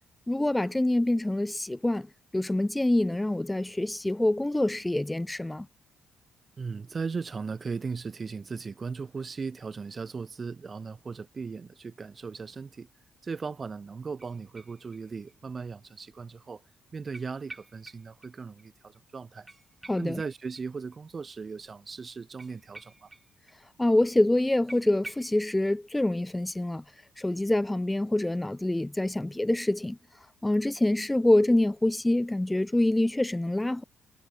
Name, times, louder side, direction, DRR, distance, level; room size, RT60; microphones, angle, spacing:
voice 1, 0.3-2.1 2.3-5.7 19.9-20.2 23.8-26.8 27.2-30.0 30.4-33.8, left 1 dB, 10° left, 0.5 m, -26 dB
voice 2, 6.6-12.9 13.2-16.6 16.9-19.5 20.0-23.1, right 5 dB, 35° right, 1.2 m, -37 dB
sound 1, 14.2-15.3 15.6-15.7 17.1-18.3 18.6-18.7 18.9-19.0 19.5-21.0 22.4-23.6 23.8-23.9 24.2-24.3 24.7-25.4, right 2 dB, 15° right, 0.9 m, -49 dB
cardioid pair, 90°, 0 cm